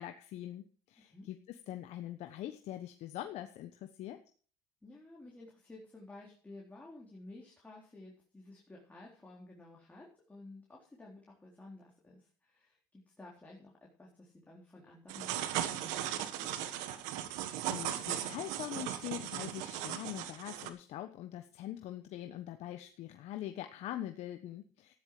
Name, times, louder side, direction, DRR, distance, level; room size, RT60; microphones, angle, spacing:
voice 1, 0.0-4.2 17.2-24.9, left 12 dB, 55° left, 7 dB, 1.1 m, -43 dB
voice 2, 1.0-1.3 4.8-16.5, left 2 dB, 10° left, -3 dB, 3.8 m, -53 dB
sound 1, 15.1-20.7, right 12 dB, 70° right, 1.6 m, -37 dB
14.0 x 10.5 x 5.0 m, 0.43 s
supercardioid pair, 95°, 13 cm